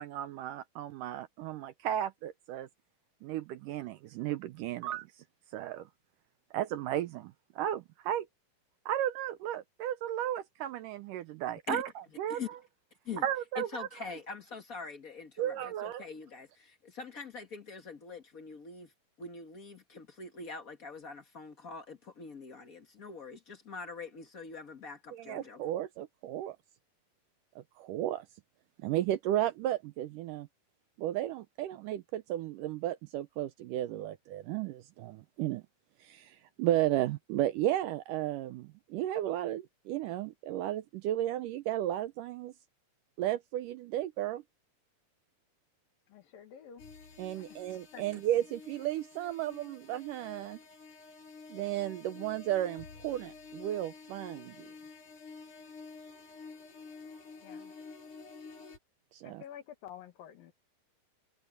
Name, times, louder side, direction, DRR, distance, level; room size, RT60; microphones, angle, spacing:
voice 1, 0.0-2.7 3.2-5.1 5.5-5.9 6.5-8.3 8.9-11.9 12.2-12.6 13.2-13.9 15.4-16.0 25.1-26.6 27.6-28.3 28.8-30.5 31.0-35.6 36.0-42.5 43.2-44.4 47.2-50.6 51.5-54.7 59.1-59.4, right 12 dB, 80° right, 2.0 m, -34 dB
voice 2, 13.5-18.9 19.2-25.6, left 4 dB, 85° left, 0.7 m, -44 dB
voice 3, 46.1-46.8 47.4-48.0 57.4-57.7 59.2-60.5, left 9 dB, 70° left, 3.3 m, -50 dB
sound 1, 46.8-58.8, left 4 dB, 55° left, 6.1 m, -50 dB
omnidirectional pair, 4.3 m